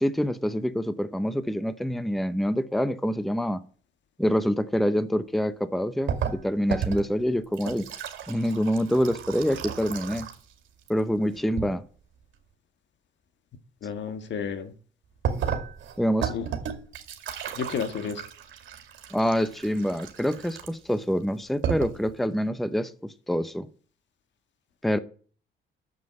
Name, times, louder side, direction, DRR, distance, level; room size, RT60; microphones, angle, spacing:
voice 1, 0.0-3.6 4.2-7.9 8.3-10.3 10.9-11.8 16.0-16.3 19.1-23.7 24.8-25.0, equal, ahead, 0.8 m, -26 dB
sound 1, 6.1-10.5 10.8-11.7 15.2-21.0 21.4-21.5 21.6-22.1, right 8 dB, 75° right, 2.3 m, -33 dB
voice 2, 13.8-14.7 16.3-16.4 17.5-18.2, left 6 dB, 65° left, 1.7 m, -31 dB
9.2 x 7.6 x 8.8 m
cardioid pair, 90°, 20 cm